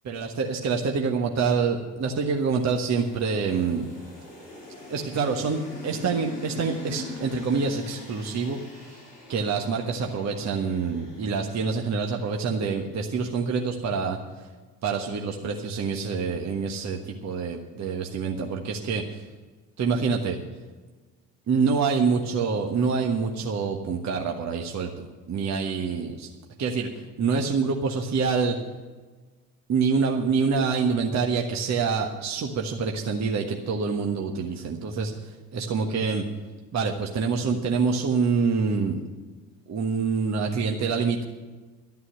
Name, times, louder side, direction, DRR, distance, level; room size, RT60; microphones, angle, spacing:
voice 1, 0.0-3.9 4.9-8.6 8.9-9.0 9.3-14.2 14.8-19.2 19.8-20.4 21.5-26.3 26.6-28.6 29.7-36.2 36.7-39.0 39.7-41.2, right 5 dB, 35° right, 2 dB, 1.4 m, -26 dB
sound 1, 2.3-12.7, left 2 dB, 90° left, 3.3 m, -43 dB
12.5 x 9.6 x 7.6 m, 1.3 s
figure-of-eight pair, 60°, 48 cm